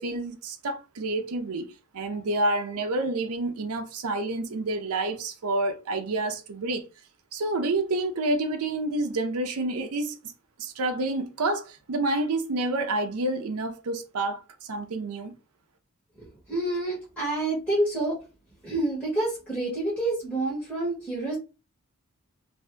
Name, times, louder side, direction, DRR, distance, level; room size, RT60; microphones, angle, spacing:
voice 1, 0.0-6.8 7.3-10.2 10.6-15.3, right 2 dB, 80° right, 0.6 m, -28 dB
voice 2, 16.5-18.2 18.6-21.4, right 2 dB, 5° left, 1.2 m, -28 dB
2.7 x 2.6 x 3.3 m
head